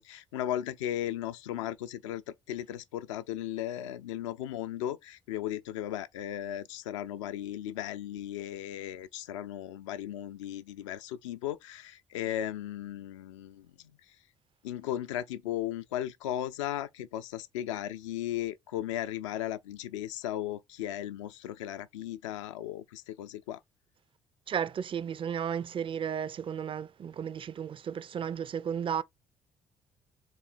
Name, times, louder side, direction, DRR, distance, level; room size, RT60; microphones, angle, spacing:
voice 1, 0.0-13.7 14.6-23.6, left 12 dB, 80° left, 0.4 m, -36 dB
voice 2, 24.5-29.0, right 8 dB, 35° right, 0.4 m, -34 dB
3.7 x 3.2 x 4.2 m
figure-of-eight pair, 45°, 16 cm